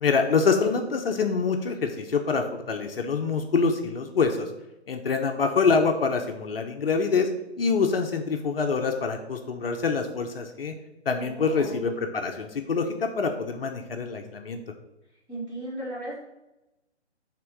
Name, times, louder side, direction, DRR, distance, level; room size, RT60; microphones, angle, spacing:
voice 1, 0.0-4.5 4.9-7.3 7.6-10.7 11.1-14.6, left 5 dB, 55° left, 4 dB, 0.8 m, -25 dB
voice 2, 11.2-11.8 15.3-16.2, right 1 dB, 10° right, -9 dB, 2.2 m, -36 dB
6.0 x 3.7 x 4.6 m, 0.96 s
figure-of-eight pair, 150°, 35 cm